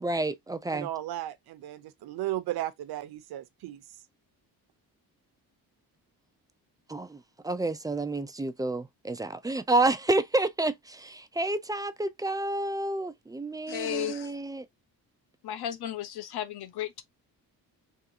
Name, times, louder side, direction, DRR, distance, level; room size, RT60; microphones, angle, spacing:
voice 1, 0.0-0.9 6.9-14.7, right 2 dB, 10° right, 0.3 m, -29 dB
voice 2, 0.7-3.8, right 14 dB, 80° right, 0.7 m, -35 dB
voice 3, 13.7-14.3 15.4-17.0, left 11 dB, 85° left, 0.9 m, -34 dB
3.6 x 3.3 x 2.7 m
cardioid pair, 135°, 37 cm